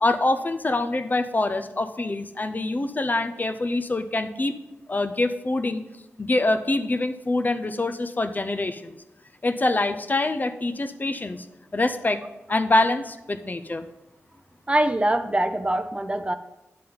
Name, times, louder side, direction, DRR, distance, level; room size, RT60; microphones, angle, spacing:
voice 1, 0.0-4.6 4.9-5.8 6.2-9.0 9.4-11.5 11.7-12.2 12.5-13.8, left 2 dB, 35° left, 9 dB, 0.6 m, -25 dB
voice 2, 14.7-16.3, right 1 dB, 20° right, 9 dB, 0.6 m, -23 dB
9.5 x 7.5 x 3.9 m, 0.94 s
cardioid pair, 60°, 5 cm